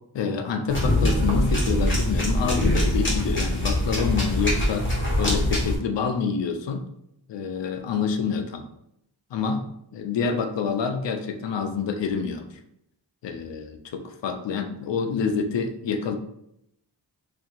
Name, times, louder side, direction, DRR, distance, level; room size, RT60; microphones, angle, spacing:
voice 1, 0.1-4.9 5.2-6.9 7.3-8.6 9.3-9.7 9.9-12.5 13.2-16.2, left 5 dB, 70° left, 6 dB, 0.5 m, -27 dB
sound 1, 0.7-5.8, left 1 dB, 25° left, 1.2 m, -23 dB
2.9 x 2.6 x 3.8 m, 0.76 s
wide cardioid pair, 105°, 46 cm